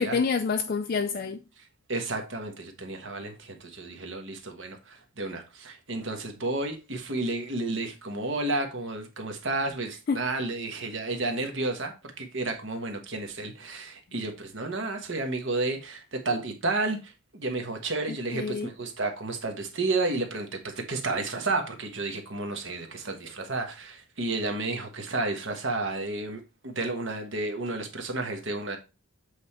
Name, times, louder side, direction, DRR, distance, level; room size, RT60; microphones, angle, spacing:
voice 1, 0.0-1.4 10.1-10.2 18.1-18.7, left 5 dB, 40° left, 0.4 m, -28 dB
voice 2, 1.9-28.8, right 2 dB, 55° right, 1.3 m, -31 dB
7.9 x 3.3 x 4.3 m
head